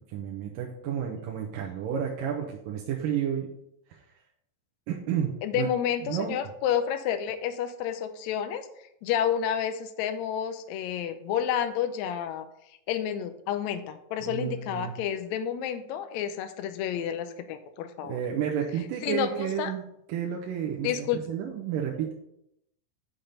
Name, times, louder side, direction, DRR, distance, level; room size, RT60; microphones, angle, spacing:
voice 1, 0.1-3.5 4.9-5.7 6.1-6.3 14.3-15.0 18.0-19.8 20.1-20.9 21.3-22.1, right 8 dB, 80° right, -1 dB, 2.5 m, -31 dB
voice 2, 5.4-8.7 9.0-18.2 19.0-19.7 20.8-21.3, left 9 dB, 85° left, 9 dB, 1.6 m, -30 dB
6.7 x 5.9 x 5.3 m, 0.78 s
omnidirectional pair, 3.9 m